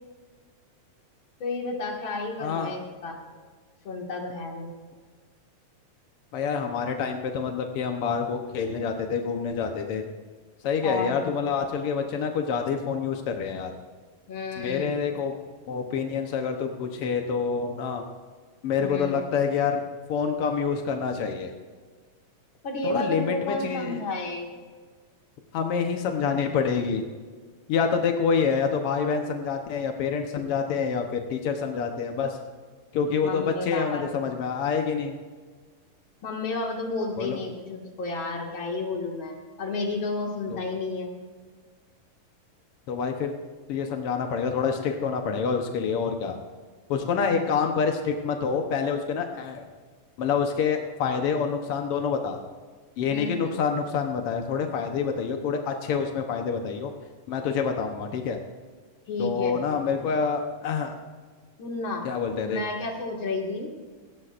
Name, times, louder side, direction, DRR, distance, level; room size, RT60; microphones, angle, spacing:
voice 1, 1.4-3.2 3.8-4.7 10.8-11.3 14.3-14.9 18.8-19.2 22.6-24.5 33.2-34.2 36.2-41.1 47.1-47.5 53.1-53.6 59.1-59.6 61.6-62.1 62.5-63.7, left 3 dB, 40° left, 0 dB, 2.3 m, -31 dB
voice 2, 2.4-2.7 6.3-10.0 10.6-13.7 14.6-15.3 15.7-18.0 18.6-19.8 20.1-21.5 22.8-24.0 25.5-27.0 27.7-32.4 32.9-35.2 37.2-37.4 40.5-40.6 42.9-43.3 43.7-46.4 46.9-49.6 50.2-52.4 53.0-56.9 57.3-58.4 59.2-60.9 62.0-62.6, left 6 dB, 75° left, 4 dB, 1.3 m, -27 dB
18.0 x 16.5 x 2.5 m, 1.5 s
omnidirectional pair, 4.0 m